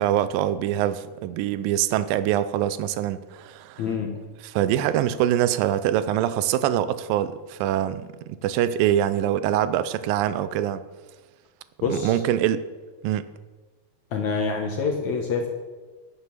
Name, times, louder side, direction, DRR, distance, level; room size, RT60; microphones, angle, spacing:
voice 1, 0.0-3.8 4.5-10.8 11.9-12.6 13.0-13.3, right 11 dB, 80° right, 2.0 m, -24 dB
voice 2, 3.8-4.2 11.8-12.2 14.1-15.5, left 4 dB, 65° left, 2.0 m, -26 dB
9.9 x 9.7 x 7.3 m
omnidirectional pair, 4.5 m